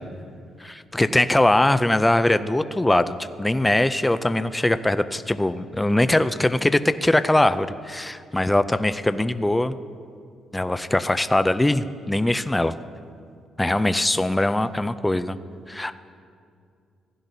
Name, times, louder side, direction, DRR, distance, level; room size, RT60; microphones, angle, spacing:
voice 1, 0.6-9.8 10.5-12.7 13.6-15.4 15.7-15.9, left 1 dB, 10° left, 12 dB, 0.4 m, -21 dB
16.0 x 10.5 x 2.7 m, 2.4 s
cardioid pair, 90°, 0 cm